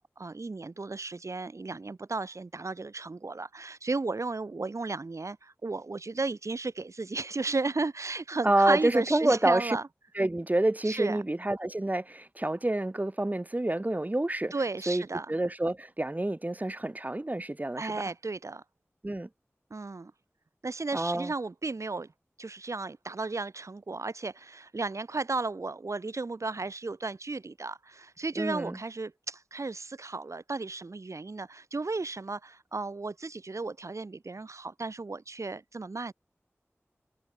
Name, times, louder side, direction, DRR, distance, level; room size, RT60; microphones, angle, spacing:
voice 1, 0.0-9.8 10.8-11.2 14.5-15.3 17.8-18.6 19.7-20.1 20.6-22.1 22.4-36.1, right 3 dB, 90° right, 7.5 m, -34 dB
voice 2, 8.4-9.8 10.2-14.5 14.9-15.0 15.3-17.9 19.0-19.3 20.9-21.3 28.4-28.8, right 1 dB, 35° right, 1.7 m, -28 dB
wide cardioid pair, 50°, 5 cm